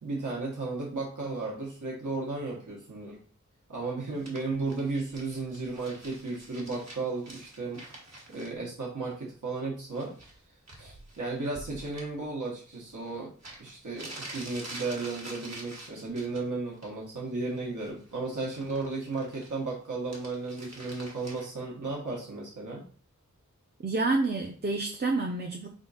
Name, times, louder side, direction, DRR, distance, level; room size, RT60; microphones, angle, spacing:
voice 1, 0.0-3.2 3.7-7.8 8.3-10.1 10.8-13.3 13.6-22.8, right 3 dB, 80° right, -3 dB, 1.1 m, -34 dB
sound 1, 4.2-8.5 9.9-10.4 10.7-12.1 13.1-13.2 13.4-16.4 16.8-17.2 17.5-19.7 20.0-21.4, right 1 dB, 60° right, 1.2 m, -46 dB
voice 2, 23.8-25.7, right 3 dB, 35° right, 1 dB, 0.5 m, -28 dB
3.6 x 2.5 x 4.0 m, 0.41 s
wide cardioid pair, 50°, 30 cm